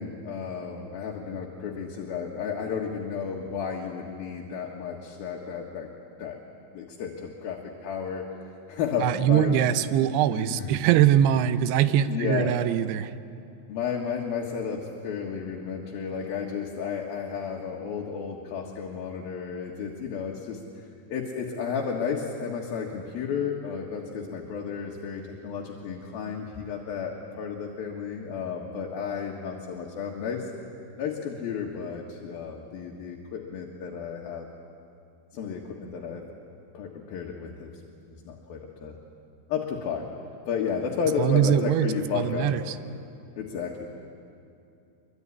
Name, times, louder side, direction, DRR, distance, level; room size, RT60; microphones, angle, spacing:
voice 1, 0.0-5.9 6.2-6.4 6.7-9.6 10.3-10.8 12.1-12.6 13.7-30.5 31.0-34.5 35.3-36.2 36.7-37.7 38.3-39.0 39.5-40.1 40.5-42.5 43.4-43.9, left 6 dB, 70° left, -1 dB, 3.4 m, -32 dB
voice 2, 9.0-13.1 41.2-41.9 42.1-42.8, right 10 dB, 90° right, 12 dB, 2.9 m, -22 dB
24.0 x 23.5 x 9.9 m, 2.6 s
omnidirectional pair, 4.5 m